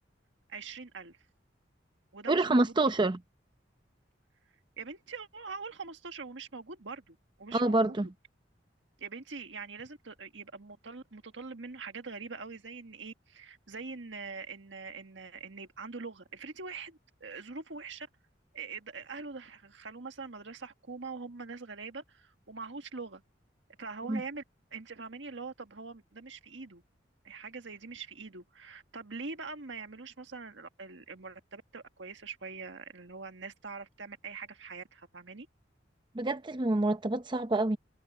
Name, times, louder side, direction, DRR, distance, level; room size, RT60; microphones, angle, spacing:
voice 1, 0.5-1.2 2.1-2.9 4.8-8.1 9.0-18.1 18.5-23.2 23.8-24.4 24.7-26.8 27.2-35.5, right 4 dB, 80° right, 1.7 m, -43 dB
voice 2, 2.3-3.2 7.5-8.1 24.1-24.2 36.1-37.8, right 2 dB, 25° right, 0.7 m, -27 dB
head